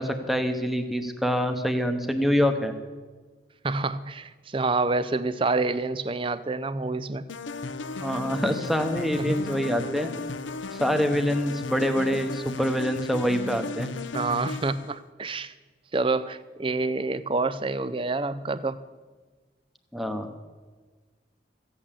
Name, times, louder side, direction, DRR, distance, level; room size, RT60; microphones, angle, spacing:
voice 1, 0.0-2.7 8.0-10.1 10.7-13.9 19.9-20.3, equal, ahead, 6 dB, 0.9 m, -25 dB
voice 2, 3.6-7.2 9.2-9.3 14.1-15.5 15.9-18.8, right 3 dB, 25° right, 15 dB, 0.5 m, -27 dB
sound 1, 7.3-14.9, left 3 dB, 80° left, 0.6 m, -35 dB
15.0 x 8.7 x 7.5 m, 1.4 s
head